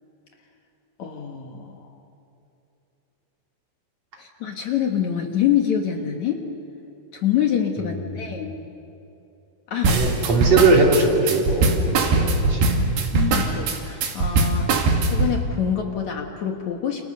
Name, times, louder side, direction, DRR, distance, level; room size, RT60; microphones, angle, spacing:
voice 1, 1.0-1.9 4.2-6.4 7.1-8.6 9.7-10.0 13.1-17.1, left 9 dB, 60° left, 2 dB, 2.5 m, -26 dB
voice 2, 9.8-12.8, right 3 dB, 45° right, -1 dB, 4.1 m, -20 dB
sound 1, 9.8-15.4, right 3 dB, 90° right, 4.2 m, -20 dB
30.0 x 28.5 x 6.8 m, 3.0 s
omnidirectional pair, 4.3 m